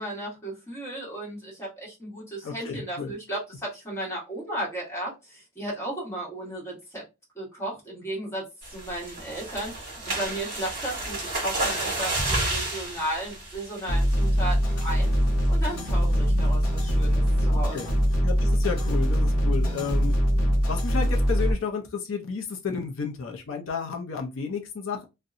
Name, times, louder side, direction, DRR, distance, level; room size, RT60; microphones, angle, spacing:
voice 1, 0.0-7.0 7.3-15.1 15.5-17.9, right 1 dB, 15° left, 1.2 m, -35 dB
voice 2, 2.4-3.1 17.5-17.9 18.2-20.2 20.7-25.1, left 6 dB, 65° left, 0.5 m, -32 dB
sound 1, 8.6-14.4 14.8-15.1 15.4-15.5 15.9-16.2, right 2 dB, 40° right, 1.2 m, -31 dB
sound 2, 13.9-21.5, equal, 90° left, 0.8 m, -23 dB
sound 3, 14.2-20.6, equal, 70° right, 0.6 m, -38 dB
2.7 x 2.1 x 2.4 m
head